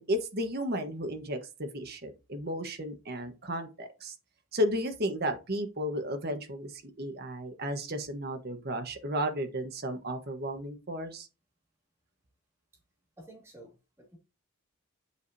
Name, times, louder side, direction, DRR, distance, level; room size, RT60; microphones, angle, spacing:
voice 1, 0.0-4.1 4.5-11.3, equal, 45° right, 1.2 m, -33 dB
voice 2, 13.2-14.2, right 1 dB, 10° right, 2.0 m, -52 dB
8.2 x 4.9 x 2.7 m
head